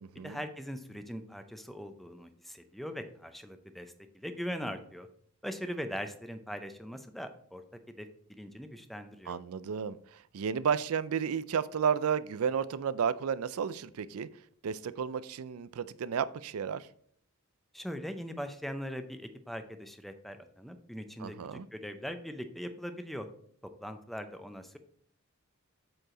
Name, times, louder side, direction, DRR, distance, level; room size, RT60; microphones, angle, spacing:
voice 1, 0.2-5.1 5.4-8.1 8.4-9.4 17.7-23.3 23.8-24.8, equal, ahead, 0.5 m, -41 dB
voice 2, 9.3-10.0 10.3-14.3 14.6-16.9 21.2-21.7, right 7 dB, 85° right, 0.4 m, -32 dB
7.7 x 4.7 x 3.8 m
head